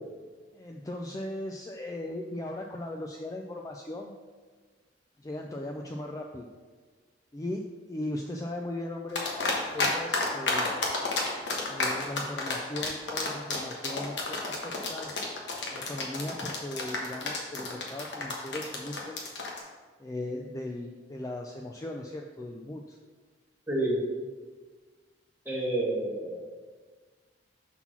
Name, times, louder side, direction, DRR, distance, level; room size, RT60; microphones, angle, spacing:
voice 1, 0.5-4.1 5.2-6.5 7.3-10.7 11.7-15.1 15.7-19.2 20.0-23.0, left 1 dB, 20° left, 1 dB, 0.3 m, -38 dB
sound 1, 9.2-9.9 10.1-19.6, left 3 dB, 70° left, 1.2 m, -30 dB
voice 2, 23.7-24.0 25.4-26.5, right 1 dB, 10° right, -6 dB, 1.6 m, -29 dB
5.8 x 4.0 x 5.7 m, 1.4 s
head